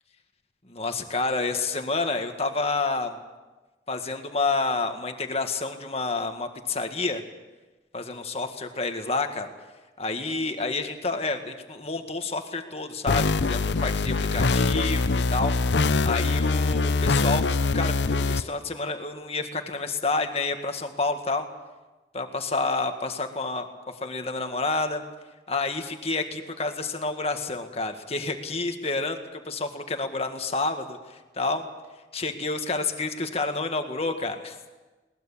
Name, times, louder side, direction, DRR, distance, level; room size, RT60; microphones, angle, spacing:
voice 1, 0.7-3.2 3.9-7.2 7.9-9.5 10.0-15.6 16.0-17.4 17.7-21.5 22.1-23.7 24.0-25.0 25.5-31.7 32.1-34.6, left 3 dB, 35° left, 6 dB, 1.8 m, -29 dB
sound 1, 13.1-18.4, left 3 dB, 75° left, 0.7 m, -23 dB
21.5 x 19.5 x 7.3 m, 1.2 s
head